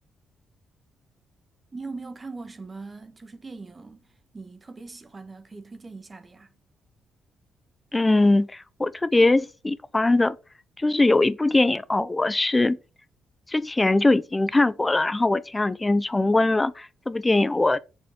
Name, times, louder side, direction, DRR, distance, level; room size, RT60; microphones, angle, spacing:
voice 1, 1.7-6.5, right 3 dB, 30° right, 1.6 m, -41 dB
voice 2, 7.9-10.4 10.8-12.8 13.5-17.8, left 2 dB, 20° left, 0.8 m, -21 dB
7.6 x 6.7 x 6.0 m
supercardioid pair, 65°, 0 cm